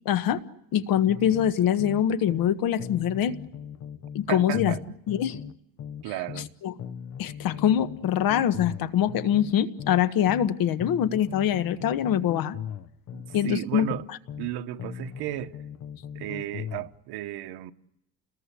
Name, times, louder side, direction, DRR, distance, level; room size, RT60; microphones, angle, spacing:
voice 1, 0.0-0.4 0.7-3.4 4.1-4.7 5.1-5.4 6.6-6.7 7.2-12.6 13.3-13.9, left 10 dB, 65° left, 1.5 m, -24 dB
sound 1, 1.1-2.5 2.8-6.5 6.8-10.5 10.8-14.5 14.8-16.9, left 8 dB, 40° left, 0.9 m, -39 dB
voice 2, 4.3-4.8 6.0-6.5 13.1-14.0 14.4-15.6 16.1-17.7, right 14 dB, 85° right, 1.2 m, -34 dB
29.5 x 21.0 x 8.4 m
cardioid pair, 150°, 37 cm